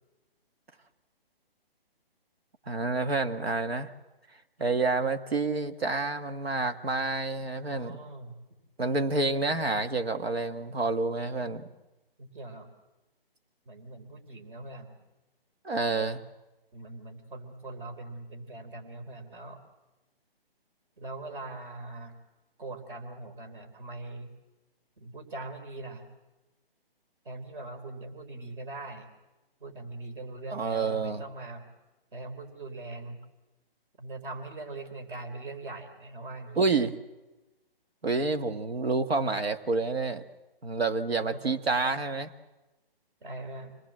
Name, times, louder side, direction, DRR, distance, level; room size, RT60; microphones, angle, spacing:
voice 1, 2.7-3.9 4.6-8.0 8.8-11.7 15.6-16.2 30.5-31.2 36.6-36.9 38.0-40.2 40.6-42.3, right 3 dB, 85° right, 9 dB, 1.8 m, -28 dB
voice 2, 7.7-8.4 12.2-12.7 13.6-15.0 16.7-19.6 21.0-22.2 22.6-24.3 25.0-26.1 27.2-29.1 29.6-31.7 32.1-33.2 34.0-36.7 41.3-42.0 43.2-43.8, right 2 dB, 60° right, 7 dB, 4.3 m, -41 dB
25.5 x 20.5 x 7.6 m, 1.1 s
hypercardioid pair, 150°, 30 cm